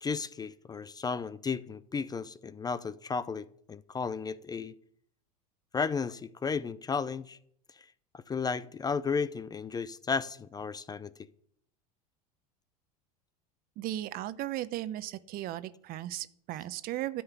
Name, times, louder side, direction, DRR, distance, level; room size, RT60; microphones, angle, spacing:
voice 1, 0.0-4.7 5.7-7.4 7.8-7.9 8.1-11.1, left 5 dB, 20° left, 0.5 m, -34 dB
voice 2, 13.8-17.2, right 14 dB, 50° right, 0.9 m, -36 dB
13.0 x 5.6 x 8.2 m
hypercardioid pair, 85°, 20 cm